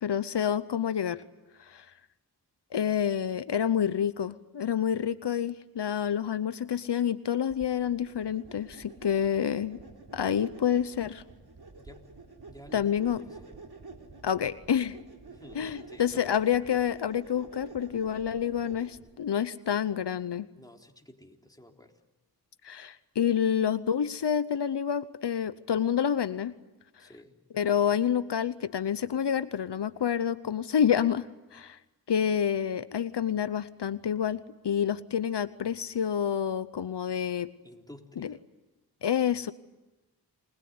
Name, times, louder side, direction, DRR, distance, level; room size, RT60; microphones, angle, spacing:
voice 1, 0.0-1.2 1.6-1.9 2.7-9.8 10.1-11.2 12.7-13.2 14.2-15.0 15.5-20.5 22.6-26.5 27.0-27.1 27.5-31.8 32.1-37.5 38.2-38.3 39.0-39.5, left 8 dB, 80° left, 14 dB, 0.8 m, -28 dB
sound 1, 7.5-19.2, right 3 dB, 65° right, 3.7 m, -49 dB
voice 2, 11.8-12.1 12.5-13.5 15.3-16.4 20.6-22.0 27.0-27.3 37.6-38.4, left 1 dB, 10° left, 2 dB, 3.7 m, -52 dB
29.0 x 21.0 x 9.6 m, 1.1 s
cardioid pair, 40°, 40 cm